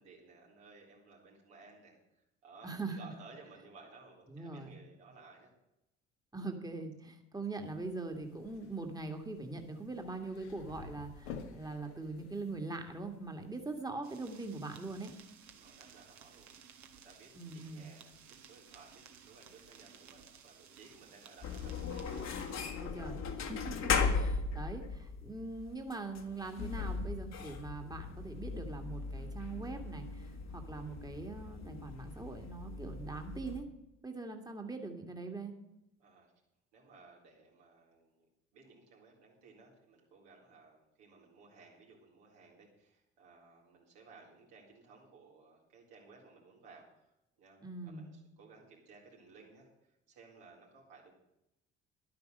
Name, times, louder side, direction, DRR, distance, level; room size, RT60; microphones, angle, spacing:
voice 1, 0.0-5.5 15.5-22.3 36.0-36.3 36.7-38.3 38.5-51.1, right 4 dB, 80° right, -2 dB, 4.0 m, -58 dB
voice 2, 2.6-3.1 4.3-4.8 6.3-15.1 17.3-17.9 22.8-33.7 34.0-35.5 47.6-48.1, right 3 dB, 10° right, 4 dB, 1.9 m, -42 dB
sound 1, 7.6-13.8, left 6 dB, 80° left, 1.5 m, -52 dB
sound 2, 14.0-22.7, right 7 dB, 55° right, 1.7 m, -57 dB
sound 3, 21.4-33.6, left 5 dB, 50° left, 1.7 m, -38 dB
11.0 x 9.6 x 6.6 m, 0.88 s
hypercardioid pair, 60°, 33 cm